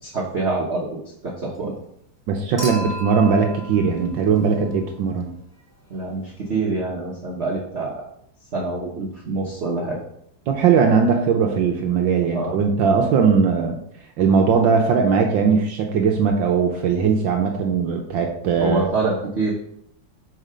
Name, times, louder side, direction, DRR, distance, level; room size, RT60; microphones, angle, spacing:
voice 1, 0.0-1.7 5.9-8.0 8.5-10.0 12.3-12.6 18.6-19.5, right 3 dB, 45° right, -5 dB, 0.9 m, -26 dB
voice 2, 2.3-5.3 10.5-13.8 14.2-18.9, right 6 dB, 70° right, 3 dB, 1.3 m, -19 dB
Human group actions / Chink clink / Liquid, 2.6-5.0 6.5-6.6, equal, 10° right, 1.1 m, -34 dB
5.5 x 4.8 x 5.0 m, 0.73 s
omnidirectional pair, 2.4 m